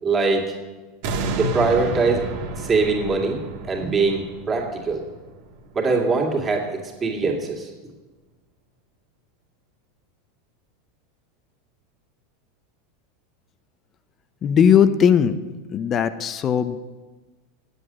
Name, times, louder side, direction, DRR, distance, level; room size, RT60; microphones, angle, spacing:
voice 1, 0.0-0.5 1.4-2.3 2.6-5.0 5.7-6.7 7.0-7.7, right 4 dB, 25° right, 0 dB, 2.3 m, -22 dB
sound 1, 1.0-6.1 6.6-6.7, right 2 dB, 65° right, 1.5 m, -30 dB
voice 2, 14.4-15.4 15.7-16.8, left 8 dB, 35° left, 13 dB, 0.6 m, -18 dB
8.0 x 7.8 x 7.5 m, 1.3 s
supercardioid pair, 115°, 0 cm